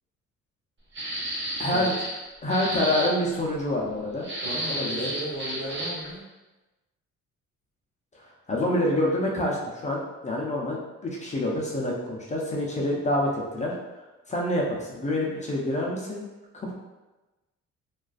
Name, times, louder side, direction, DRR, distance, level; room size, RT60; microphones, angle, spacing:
sound 1, 0.9-2.2 2.5-3.1 4.2-6.1, right 1 dB, 40° right, 0.8 m, -31 dB
voice 1, 1.6-1.9 2.4-4.2 4.7-5.1 8.5-9.6 9.8-13.7 14.3-16.2 16.5-16.7, left 1 dB, 25° left, -3 dB, 0.5 m, -27 dB
voice 2, 4.4-6.2, right 1 dB, 70° right, -7 dB, 1.3 m, -36 dB
2.4 x 2.3 x 2.3 m, 1.1 s
cardioid pair, 90°, 30 cm